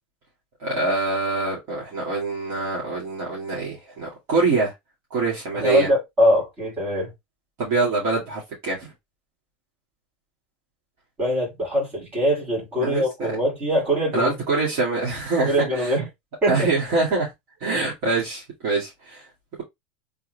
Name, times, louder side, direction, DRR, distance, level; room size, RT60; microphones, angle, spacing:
voice 1, 0.6-4.7 5.1-5.9 7.6-8.9 12.8-13.3 14.1-16.0 16.5-17.3 17.6-19.2, right 3 dB, 40° right, 1.9 m, -24 dB
voice 2, 5.6-7.1 11.2-14.4 15.5-16.1 16.4-16.7, equal, 20° right, 2.6 m, -22 dB
3.6 x 3.2 x 3.2 m
supercardioid pair, 165°, 7 cm